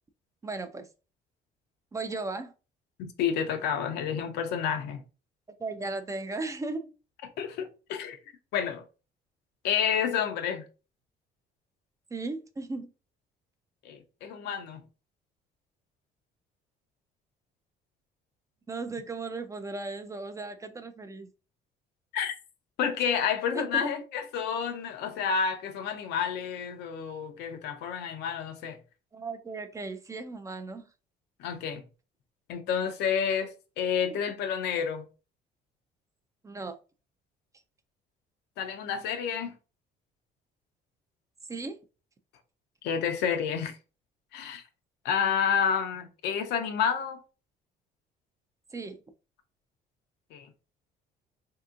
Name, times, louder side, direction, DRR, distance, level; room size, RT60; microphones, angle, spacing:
voice 1, 0.4-0.9 1.9-2.5 5.6-6.9 12.1-12.9 18.7-21.3 23.7-23.9 29.1-30.8 34.1-34.2 36.4-36.8 41.5-41.8 48.7-49.0, right 3 dB, 20° right, 0.4 m, -36 dB
voice 2, 3.0-5.0 7.4-8.2 8.5-8.8 9.6-10.6 13.8-14.8 22.1-22.3 22.8-28.8 31.4-31.8 32.5-35.0 38.6-39.5 42.8-43.8 44.3-44.6 45.0-47.2 50.3-50.5, left 7 dB, 80° left, 0.6 m, -29 dB
3.5 x 2.7 x 2.4 m
cardioid pair, 110°, 17 cm